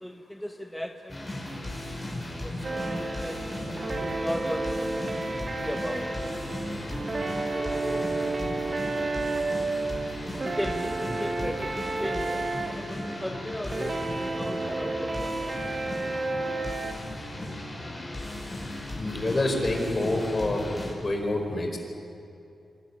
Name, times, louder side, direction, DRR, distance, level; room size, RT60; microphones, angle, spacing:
voice 1, 0.0-1.8 2.4-6.4 7.5-8.6 10.4-15.6, equal, 5° left, 5 dB, 1.1 m, -37 dB
sound 1, 1.1-20.9, left 1 dB, 25° left, 5.6 m, -36 dB
sound 2, 2.6-16.9, right 2 dB, 45° right, 2.5 m, -31 dB
voice 2, 18.9-20.6 21.0-21.8, left 2 dB, 40° left, 3 dB, 4.7 m, -27 dB
26.5 x 13.0 x 9.9 m, 2.7 s
cardioid pair, 60°, 0 cm